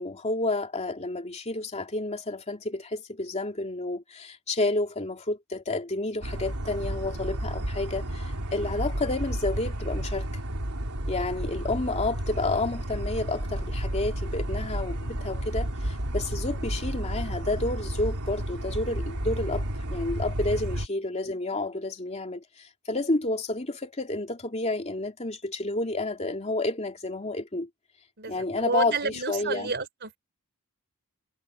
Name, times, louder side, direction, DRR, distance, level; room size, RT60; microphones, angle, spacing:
voice 1, 0.0-10.3 11.1-27.7 28.3-29.7, left 2 dB, 30° left, 2.7 m, -30 dB
sound 1, 6.2-20.9, right 1 dB, 85° right, 3.5 m, -32 dB
voice 2, 28.2-30.2, right 4 dB, 50° right, 4.9 m, -31 dB
head